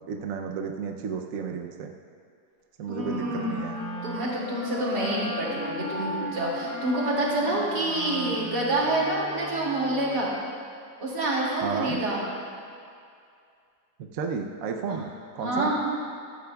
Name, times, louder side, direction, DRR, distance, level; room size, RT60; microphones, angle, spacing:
voice 1, 0.1-1.9 2.8-3.8 11.6-12.0 14.0-15.1 15.3-15.7, right 6 dB, 65° right, 3 dB, 1.0 m, -32 dB
Wind instrument woodwind instrument, 2.9-10.3, equal, 85° left, 2.3 m, -37 dB
voice 2, 2.9-10.4 11.0-12.3 14.9-15.0 15.4-15.8, right 1 dB, 85° right, -5 dB, 3.0 m, -27 dB
15.5 x 13.0 x 2.3 m, 2.4 s
omnidirectional pair, 1.7 m